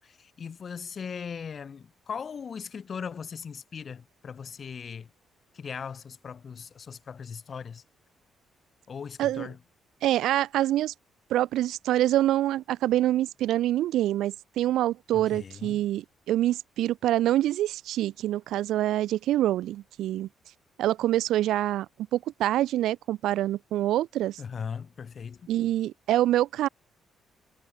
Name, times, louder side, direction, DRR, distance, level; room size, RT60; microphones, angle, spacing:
voice 1, 0.0-5.1 5.5-7.8 8.9-9.6 15.1-15.8 24.4-25.5, left 6 dB, 45° left, 4.7 m, -39 dB
voice 2, 10.0-10.9 11.3-20.3 20.8-21.9 22.1-24.4 25.5-26.7, right 13 dB, 85° right, 1.0 m, -26 dB
cardioid pair, 90°, 0 cm